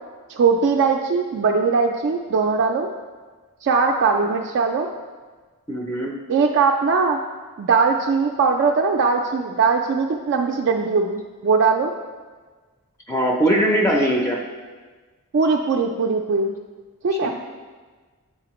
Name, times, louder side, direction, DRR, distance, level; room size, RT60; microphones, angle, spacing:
voice 1, 0.3-2.9 3.6-4.9 6.3-7.2 7.6-11.9 15.3-16.5 17.0-17.3, right 4 dB, 55° right, 2 dB, 0.3 m, -20 dB
voice 2, 5.7-6.1 13.1-14.4 17.1-17.3, right 1 dB, 10° left, 0 dB, 0.5 m, -20 dB
8.2 x 4.1 x 3.0 m, 1.4 s
head